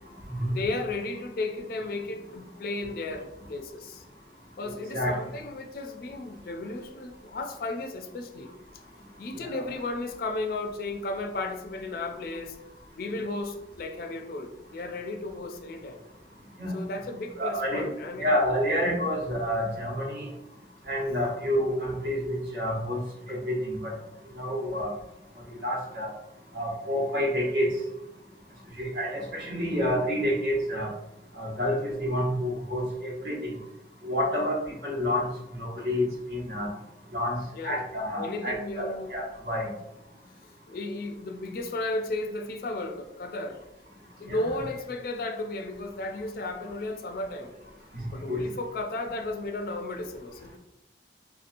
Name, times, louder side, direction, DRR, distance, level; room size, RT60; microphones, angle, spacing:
voice 1, 0.5-4.0 4.6-8.5 9.2-12.6 13.0-16.0 16.7-18.3 18.9-19.1 23.3-23.4 37.5-37.8 38.2-39.1 40.7-43.6 44.2-47.5 48.1-50.6, left 2 dB, 55° left, 6 dB, 0.4 m, -34 dB
voice 2, 17.4-17.9 18.2-20.3 20.9-23.0 23.3-23.9 24.4-24.9 25.6-26.1 26.5-27.7 28.8-30.9 31.4-33.4 34.0-34.6 34.8-35.3 35.6-36.7 37.1-37.4 37.6-39.7 44.3-44.4 48.3-48.4, equal, 70° right, -3 dB, 1.0 m, -28 dB
3.5 x 2.8 x 2.5 m, 0.90 s
head